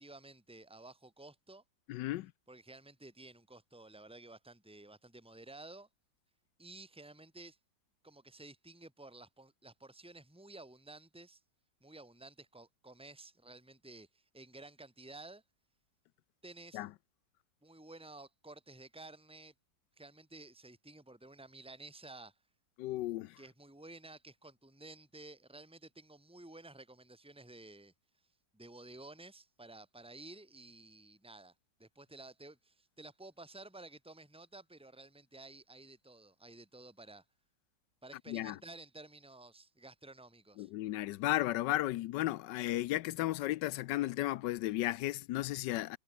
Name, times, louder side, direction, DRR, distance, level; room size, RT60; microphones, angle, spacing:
voice 1, 0.0-1.6 2.5-5.9 6.6-7.6 8.0-11.4 11.8-15.4 16.4-16.8 17.6-19.5 20.0-22.3 23.4-27.9 28.5-31.5 31.8-37.2 38.0-40.7, right 2 dB, 5° right, 3.4 m, -53 dB
voice 2, 1.9-2.3 16.7-16.9 22.8-23.4 38.3-38.6 40.6-46.0, left 16 dB, 75° left, 1.2 m, -34 dB
omnidirectional pair, 2.0 m